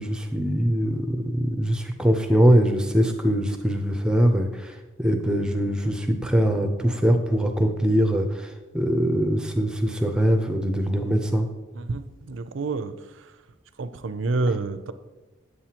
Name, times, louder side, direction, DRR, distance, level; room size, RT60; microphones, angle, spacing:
voice 1, 0.0-4.7 5.0-11.5, equal, 5° right, 5 dB, 0.5 m, -22 dB
voice 2, 11.7-12.9 13.8-14.9, right 3 dB, 80° right, 11 dB, 0.5 m, -28 dB
8.1 x 7.5 x 2.9 m, 1.1 s
head